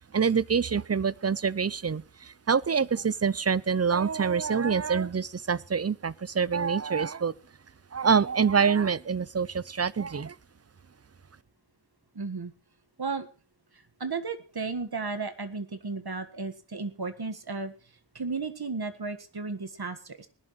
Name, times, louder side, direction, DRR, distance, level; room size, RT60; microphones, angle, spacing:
voice 1, 0.1-7.3 7.9-10.3, right 6 dB, 35° right, 0.5 m, -26 dB
voice 2, 12.1-12.5 13.0-13.3 14.0-17.7 18.1-20.3, right 4 dB, 60° right, 1.7 m, -34 dB
20.0 x 11.0 x 3.2 m
wide cardioid pair, 60°, 43 cm